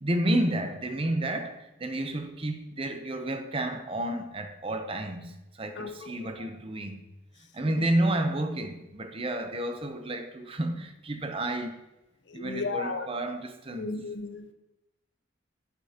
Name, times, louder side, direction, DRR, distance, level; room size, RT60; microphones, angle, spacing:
voice 1, 0.0-7.0 7.5-11.8 12.3-13.9, right 1 dB, 30° right, 0.7 m, -31 dB
voice 2, 5.8-6.5 12.3-13.1 13.8-14.5, left 3 dB, 65° left, 0.8 m, -35 dB
11.5 x 8.2 x 2.9 m
head